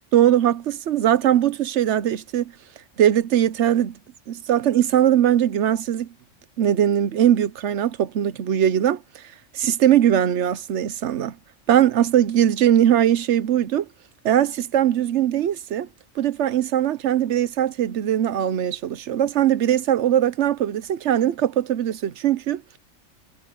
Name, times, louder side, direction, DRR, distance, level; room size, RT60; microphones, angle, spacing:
voice 1, 0.1-2.5 3.0-4.0 4.3-6.1 6.6-9.2 9.5-11.4 11.7-13.9 14.2-15.9 16.2-22.8, right 11 dB, 70° right, 1.0 m, -20 dB
omnidirectional pair, 1.3 m